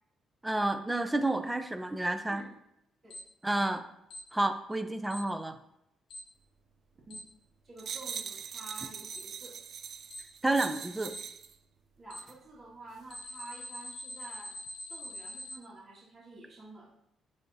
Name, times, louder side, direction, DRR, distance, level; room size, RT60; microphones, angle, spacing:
voice 1, 0.4-2.4 3.4-3.8 4.3-5.6 10.4-11.1, right 2 dB, 10° right, 8 dB, 0.6 m, -30 dB
Alarm, 3.1-3.2 4.1-4.2 5.1-5.2 6.1-6.2 7.1-7.2 8.1-8.2 9.1-9.2 10.1-10.2 11.1-11.2 12.1-12.2 13.1-15.5, left 1 dB, 70° left, 2.0 m, -43 dB
voice 2, 7.6-9.6 12.0-14.6 14.9-16.9, right 2 dB, 40° right, -6 dB, 2.0 m, -49 dB
sound 1, 7.8-11.5 12.2-12.4, right 7 dB, 60° right, 0.4 m, -41 dB
10.0 x 3.5 x 2.7 m, 0.79 s
cardioid pair, 90°, 0 cm